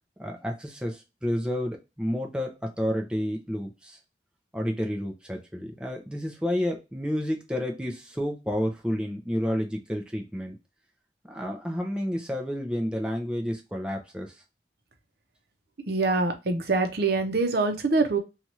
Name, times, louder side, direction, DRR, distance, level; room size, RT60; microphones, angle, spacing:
voice 1, 0.2-4.0 4.5-10.6 11.3-14.3, equal, 5° right, 1 dB, 0.5 m, -30 dB
voice 2, 15.9-18.2, right 3 dB, 60° right, 5 dB, 0.7 m, -24 dB
2.8 x 2.4 x 2.9 m, 0.25 s
head